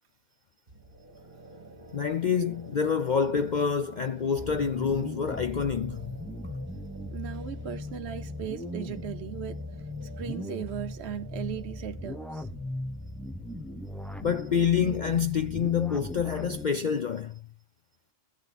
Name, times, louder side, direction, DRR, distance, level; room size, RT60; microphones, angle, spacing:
sound 1, 0.7-14.3, right 1 dB, 45° right, 2.2 m, -50 dB
voice 1, 1.9-6.1 14.2-17.4, left 7 dB, 50° left, 0.6 m, -27 dB
sound 2, 4.4-16.7, left 1 dB, ahead, 0.6 m, -38 dB
voice 2, 7.1-12.5, right 9 dB, 65° right, 0.9 m, -38 dB
14.0 x 9.1 x 4.1 m
omnidirectional pair, 1.3 m